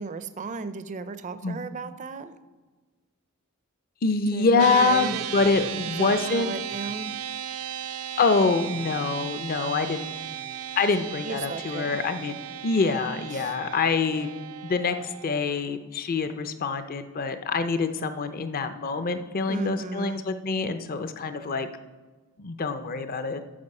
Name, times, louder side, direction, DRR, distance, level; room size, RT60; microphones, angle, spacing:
voice 1, 0.0-2.3 4.3-5.2 6.0-7.1 11.2-11.9 13.3-13.6 19.5-20.2, right 4 dB, 35° right, 12 dB, 0.4 m, -35 dB
voice 2, 4.0-6.5 8.2-10.1 10.8-14.3 14.6-21.7 22.4-23.4, left 4 dB, 45° left, 9 dB, 0.5 m, -25 dB
sound 1, 4.6-15.4, right 10 dB, 90° right, 0.5 m, -36 dB
8.6 x 6.8 x 5.4 m, 1.3 s
head